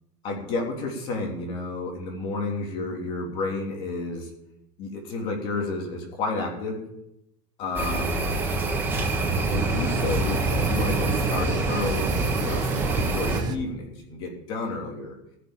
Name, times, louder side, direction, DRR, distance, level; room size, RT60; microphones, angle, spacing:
voice 1, 0.2-4.3 4.8-6.8 7.6-8.4 9.5-12.1 12.4-15.2, left 3 dB, 40° left, 1 dB, 3.2 m, -31 dB
sound 1, 7.8-13.4, right 2 dB, 15° right, 2.0 m, -26 dB
sound 2, 8.0-13.6, right 6 dB, 30° right, 0.9 m, -32 dB
16.0 x 6.8 x 8.8 m, 0.83 s
cardioid pair, 175°, 13 cm